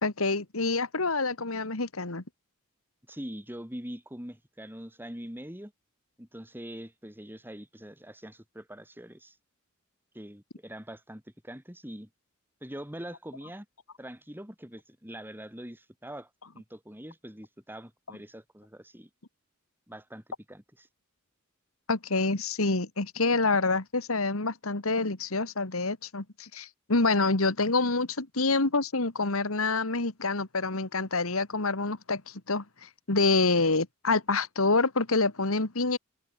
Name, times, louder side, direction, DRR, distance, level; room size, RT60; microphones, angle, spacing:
voice 1, 0.0-2.2 21.9-36.0, left 3 dB, 80° left, 2.2 m, -27 dB
voice 2, 3.1-5.7 6.2-9.4 10.1-12.1 12.6-13.7 14.0-16.3 16.5-19.1 19.9-20.9, equal, 10° right, 6.5 m, -43 dB
head